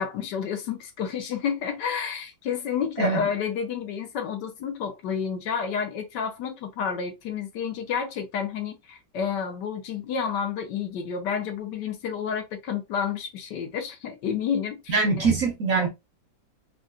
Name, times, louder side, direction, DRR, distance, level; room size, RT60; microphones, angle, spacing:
voice 1, 0.0-15.3, left 7 dB, 70° left, 1.3 m, -30 dB
voice 2, 14.9-15.9, right 4 dB, 60° right, 0.9 m, -23 dB
3.7 x 2.2 x 2.5 m
omnidirectional pair, 2.0 m